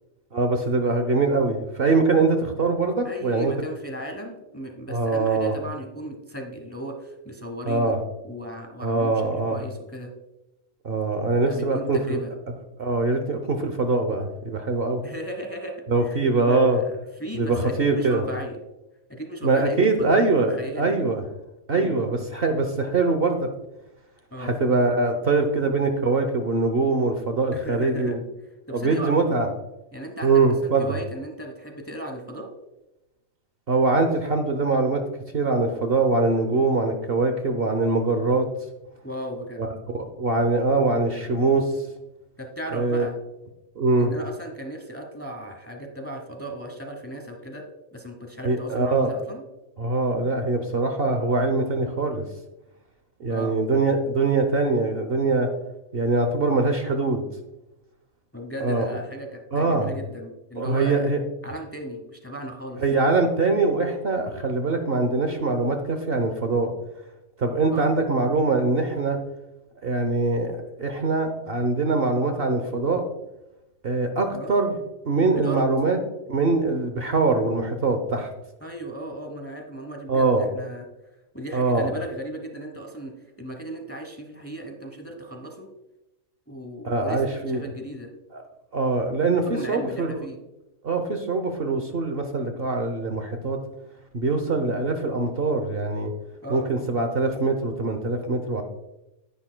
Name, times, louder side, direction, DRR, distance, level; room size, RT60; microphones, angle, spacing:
voice 1, 0.3-3.5 4.9-5.5 7.7-8.0 8.8-9.6 10.8-12.2 12.8-15.0 15.9-16.8 17.3-18.2 19.4-21.2 21.7-23.5 24.4-28.2 28.7-29.5 30.2-30.9 33.7-35.0 35.3-38.5 39.6-41.7 42.7-43.1 43.8-44.1 48.4-49.1 49.8-52.2 53.2-55.5 55.9-57.2 58.6-58.9 59.5-59.9 60.6-61.2 62.8-66.7 67.4-69.2 69.8-73.0 73.8-74.7 75.0-76.0 76.3-78.3 80.1-80.5 81.5-81.9 86.8-87.6 88.3-88.4 88.7-90.1 90.8-93.6 94.1-96.1 96.5-98.6, right 3 dB, 50° right, 6 dB, 0.9 m, -23 dB
voice 2, 3.0-7.9 8.2-10.1 11.5-12.3 15.0-15.7 16.0-18.6 19.1-20.2 20.6-21.0 21.7-22.0 24.3-24.5 27.5-28.2 28.7-29.2 29.9-32.5 39.0-39.6 42.4-43.1 44.0-47.6 47.9-49.4 53.3-53.5 58.3-61.1 61.4-62.8 67.7-67.9 74.3-74.5 75.3-75.7 78.6-80.9 81.3-85.7 86.5-88.1 89.4-90.4 96.4-96.7, right 1 dB, 10° left, 4 dB, 0.9 m, -36 dB
10.5 x 9.9 x 2.2 m, 0.95 s
omnidirectional pair, 1.4 m